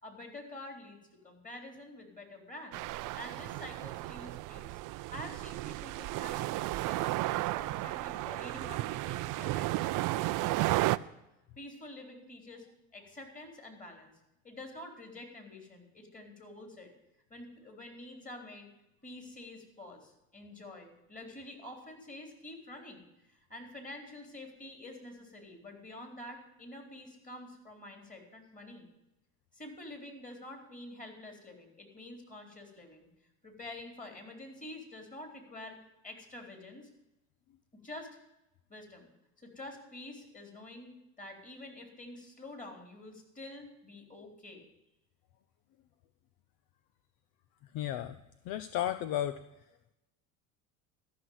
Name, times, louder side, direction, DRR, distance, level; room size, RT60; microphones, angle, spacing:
voice 1, 0.0-1.0 1.2-2.8 3.1-4.8 5.1-11.0 11.6-12.7 12.9-14.1 14.4-16.9 17.3-18.7 19.0-28.9 29.5-33.1 33.4-35.8 36.0-36.9 37.8-38.2 38.7-39.1 39.4-44.6, left 1 dB, 20° left, 3 dB, 4.0 m, -48 dB
sound 1, 2.7-11.0, right 18 dB, 45° right, 0.5 m, -33 dB
voice 2, 47.7-48.2 48.5-49.4, left 12 dB, 55° left, 13 dB, 0.8 m, -33 dB
13.5 x 6.4 x 9.6 m, 0.91 s
hypercardioid pair, 75°, 44 cm